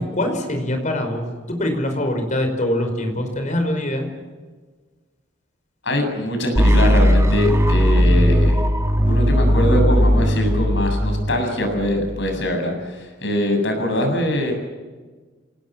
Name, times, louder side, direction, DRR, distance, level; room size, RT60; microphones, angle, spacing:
voice 1, 0.0-4.1, left 1 dB, 40° left, 6 dB, 5.2 m, -23 dB
voice 2, 5.8-8.6 9.0-14.5, left 1 dB, 70° left, 4 dB, 7.5 m, -22 dB
sound 1, 6.5-12.5, equal, 15° right, 1.6 m, -17 dB
27.5 x 19.0 x 7.6 m, 1.4 s
head